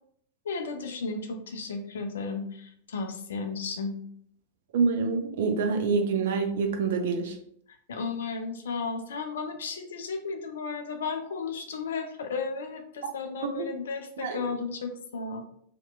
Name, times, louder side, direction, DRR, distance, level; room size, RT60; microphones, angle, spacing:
voice 1, 0.5-4.0 7.9-15.4, left 4 dB, 65° left, 6 dB, 0.4 m, -34 dB
voice 2, 4.7-7.4 13.6-13.7 14.2-14.5, right 4 dB, 55° right, 5 dB, 0.4 m, -26 dB
2.8 x 2.1 x 2.3 m, 0.65 s
figure-of-eight pair, 90°, 0 cm